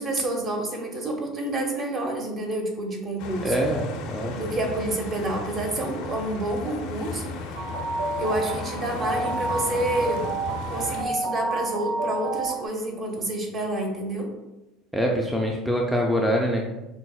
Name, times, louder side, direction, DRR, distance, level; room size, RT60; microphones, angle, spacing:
voice 1, 0.0-3.6 4.3-7.3 8.2-10.3 10.7-14.3, right 1 dB, 35° right, 2 dB, 0.8 m, -28 dB
sound 1, 3.2-11.0, left 4 dB, 70° left, 0.5 m, -36 dB
voice 2, 3.4-4.4 14.9-16.6, equal, ahead, -1 dB, 0.4 m, -24 dB
sound 2, 7.6-12.7, right 3 dB, 70° right, 0.5 m, -29 dB
5.3 x 2.0 x 2.3 m, 1.0 s
supercardioid pair, 110°, 0 cm